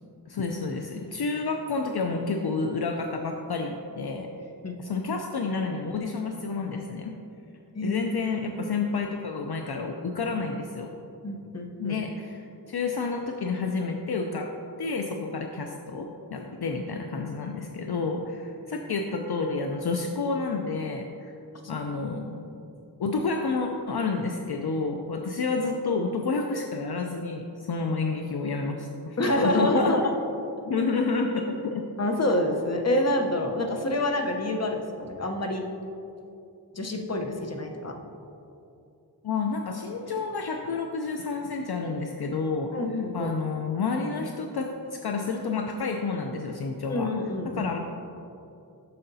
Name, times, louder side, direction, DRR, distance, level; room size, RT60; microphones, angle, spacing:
voice 1, 0.3-4.3 4.8-7.1 7.8-10.9 11.8-14.5 14.8-21.3 21.7-22.7 23.0-29.9 30.6-31.8 39.2-42.8 43.1-47.1 47.5-47.8, left 4 dB, 65° left, 3 dB, 0.5 m, -30 dB
voice 2, 11.2-12.0 29.2-30.0 32.0-35.6 36.7-37.9 42.7-43.3 46.9-47.6, left 1 dB, 35° left, 2 dB, 0.8 m, -27 dB
9.8 x 6.5 x 2.7 m, 2.7 s
wide cardioid pair, 55°, 43 cm